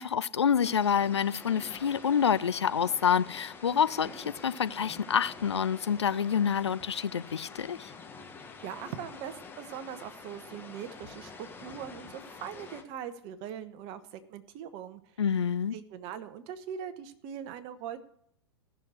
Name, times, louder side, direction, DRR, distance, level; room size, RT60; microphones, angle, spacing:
voice 1, 0.0-7.9 15.2-15.7, left 7 dB, 75° left, 0.5 m, -27 dB
sound 1, 0.6-12.8, left 4 dB, 15° left, 1.5 m, -47 dB
voice 2, 8.4-15.0 15.7-18.0, right 9 dB, 40° right, 1.2 m, -41 dB
15.0 x 6.5 x 7.9 m
figure-of-eight pair, 100°, 14 cm